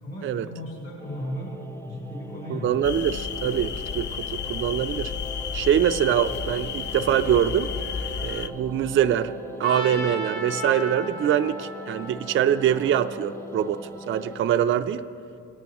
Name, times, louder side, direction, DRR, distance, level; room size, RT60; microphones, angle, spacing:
voice 1, 0.0-2.8, equal, 55° left, -4 dB, 2.5 m, -35 dB
sound 1, 1.0-14.4, left 1 dB, 10° left, 0.7 m, -41 dB
voice 2, 2.5-5.1 5.5-7.7 8.2-13.8 14.1-15.0, right 9 dB, 45° right, 9 dB, 0.4 m, -24 dB
sound 2, 2.8-8.5, left 7 dB, 35° left, 0.4 m, -32 dB
Trumpet, 9.6-13.7, left 1 dB, 80° left, 2.2 m, -36 dB
17.5 x 9.5 x 3.0 m, 2.5 s
cardioid pair, 90°, 30 cm